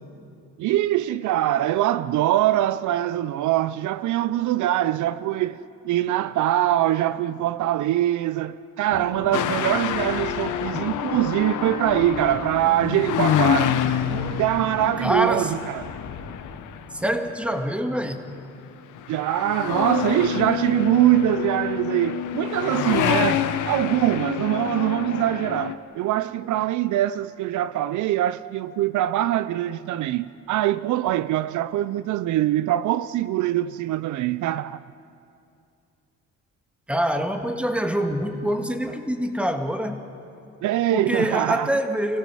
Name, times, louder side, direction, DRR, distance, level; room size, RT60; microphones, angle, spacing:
voice 1, 0.6-13.8 14.0-15.8 19.1-34.8 40.6-41.7, right 13 dB, 75° right, 0.5 m, -23 dB
sound 1, 8.9-16.7, left 5 dB, 65° left, 2.0 m, -40 dB
sound 2, 9.3-17.6 18.3-18.6 18.9-25.7, left 10 dB, 80° left, 1.0 m, -27 dB
voice 2, 15.0-15.5 16.9-18.3 36.9-40.0 40.9-42.2, equal, 5° right, 1.8 m, -25 dB
30.0 x 16.5 x 6.3 m
cardioid pair, 90°, 30 cm